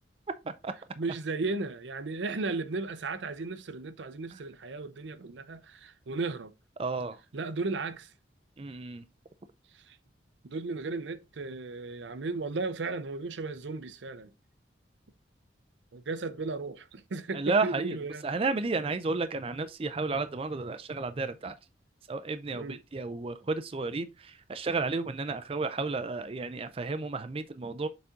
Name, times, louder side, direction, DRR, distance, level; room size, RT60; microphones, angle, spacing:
voice 1, 1.0-6.5 7.3-8.1 9.7-10.0 10.4-14.3 15.9-18.2 22.5-22.8, right 3 dB, 75° right, 0.6 m, -35 dB
voice 2, 6.8-7.2 8.6-9.0 17.3-18.0 18.2-21.5 22.1-27.9, right 3 dB, 30° right, 0.4 m, -32 dB
6.8 x 4.2 x 3.7 m
head